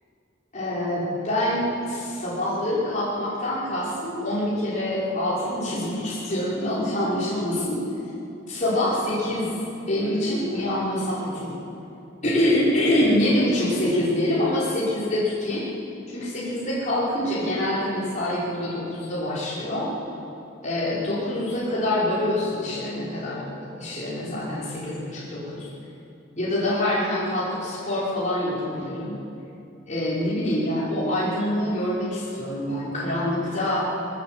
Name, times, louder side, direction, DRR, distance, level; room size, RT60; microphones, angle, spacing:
voice 1, 0.5-7.8 8.5-9.5 9.9-11.5 12.2-15.6 16.1-19.9 20.6-25.7 26.4-29.2 29.9-33.9, left 1 dB, 40° left, -9 dB, 5.6 m, -25 dB
22.0 x 19.0 x 7.8 m, 2.7 s
head